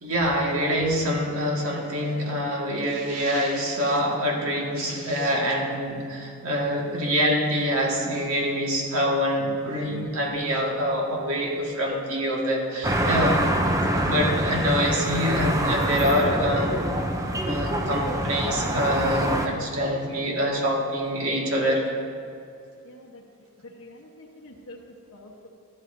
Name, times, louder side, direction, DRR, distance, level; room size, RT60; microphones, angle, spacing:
voice 1, 0.0-13.5 14.0-16.8 17.5-21.9, equal, 80° right, -1 dB, 1.8 m, -25 dB
sound 1, 12.8-19.5, right 1 dB, 15° right, 0.5 m, -25 dB
voice 2, 22.8-23.2 23.6-25.5, left 1 dB, 70° left, -2 dB, 1.1 m, -46 dB
14.0 x 12.0 x 2.7 m, 2.4 s
head